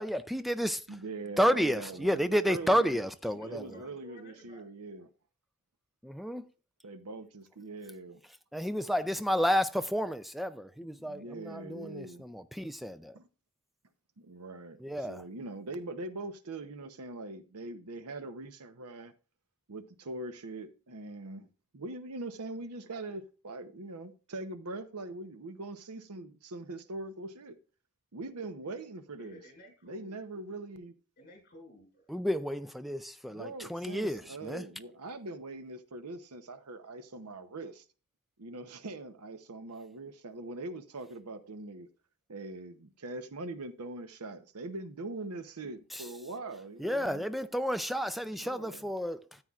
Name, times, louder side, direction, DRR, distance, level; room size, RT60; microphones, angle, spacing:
voice 1, 0.0-0.8 1.4-3.8 6.0-6.4 8.5-12.4 12.8-13.1 14.8-15.2 32.1-34.6 45.9-46.1 46.8-49.4, equal, ahead, 0.3 m, -31 dB
voice 2, 0.9-3.0 3.4-5.1 6.8-8.2 11.0-12.2 13.1-13.2 14.2-19.1 19.7-21.5 21.7-27.6 28.1-29.4 29.8-30.9 33.3-37.8 38.4-41.9 42.3-47.2 48.4-48.8, right 2 dB, 90° right, 0.8 m, -42 dB
voice 3, 2.6-3.0 3.3-4.6 29.2-30.2 31.2-32.1, equal, 40° left, 5.7 m, -54 dB
13.5 x 8.8 x 2.4 m
head